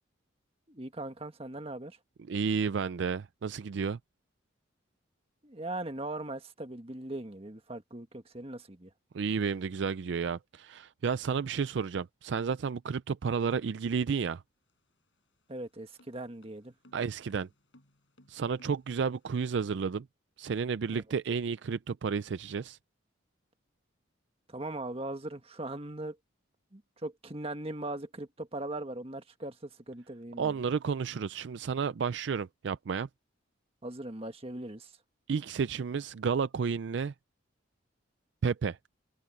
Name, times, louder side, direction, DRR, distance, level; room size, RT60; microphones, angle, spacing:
voice 1, 0.7-2.0 5.4-8.9 15.5-16.7 24.5-26.2 26.7-30.6 33.8-34.9, right 1 dB, 30° right, 1.7 m, -39 dB
voice 2, 2.3-4.0 9.1-14.4 16.9-17.5 18.3-20.1 20.4-22.8 30.4-33.1 35.3-37.1 38.4-38.8, right 6 dB, 65° right, 0.4 m, -31 dB
sound 1, 14.5-19.2, left 1 dB, 75° left, 5.7 m, -64 dB
head